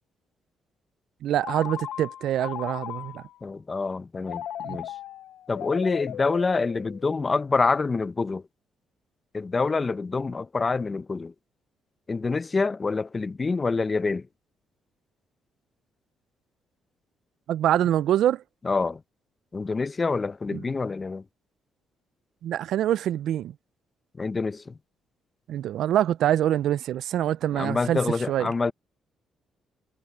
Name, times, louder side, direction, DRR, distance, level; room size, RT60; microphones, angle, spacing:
voice 1, 1.2-3.2 4.6-4.8 17.5-18.4 20.5-20.6 22.4-23.5 25.5-28.0 28.3-28.5, right 11 dB, 75° right, 0.4 m, -25 dB
Telephone, 1.4-3.4 4.2-7.3, left 11 dB, 75° left, 0.6 m, -37 dB
voice 2, 3.4-4.9 5.5-8.4 9.3-11.3 12.1-14.2 18.6-19.0 19.5-21.2 24.2-24.8 27.5-28.7, left 4 dB, 30° left, 0.7 m, -26 dB
cardioid pair, 90°, 0 cm